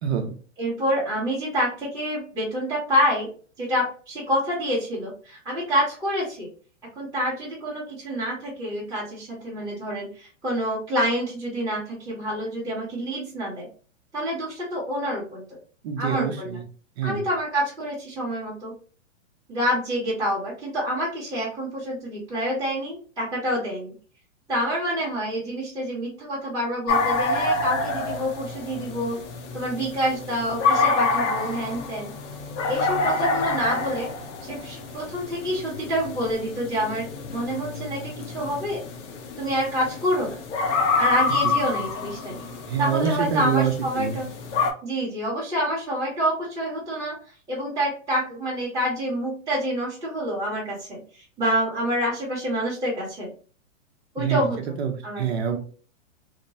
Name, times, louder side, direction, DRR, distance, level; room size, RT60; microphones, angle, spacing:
voice 1, 0.0-0.4 15.8-16.6 17.0-17.3 41.4-41.6 42.7-44.2 54.2-54.5 54.8-55.6, right 7 dB, 55° right, 4 dB, 0.8 m, -26 dB
voice 2, 0.6-3.3 3.6-6.5 7.0-13.7 14.1-15.4 16.0-16.6 17.0-18.7 19.5-23.9 24.5-29.2 29.5-32.1 32.7-34.1 34.4-38.8 39.4-40.4 41.0-42.5 42.8-44.3 44.8-47.2 47.5-53.3 54.1-54.6 55.0-55.3, equal, 10° right, -9 dB, 1.0 m, -27 dB
sound 1, 26.9-44.7, left 3 dB, 65° left, 0.8 m, -27 dB
2.9 x 2.0 x 2.8 m, 0.41 s
hypercardioid pair, 130°, 38 cm